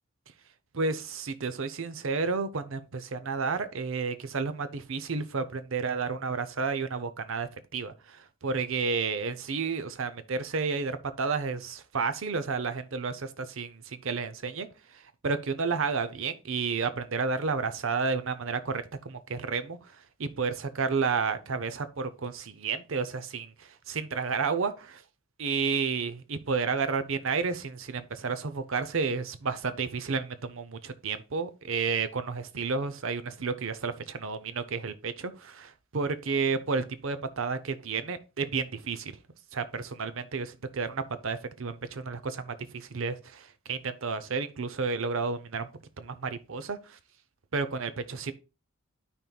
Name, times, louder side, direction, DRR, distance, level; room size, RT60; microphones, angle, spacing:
voice 1, 0.7-14.7 15.2-19.8 20.2-25.0 25.4-39.1 39.5-45.7 46.0-47.0 47.5-48.3, right 4 dB, 65° right, 0.7 m, -31 dB
12.5 x 4.4 x 2.3 m
head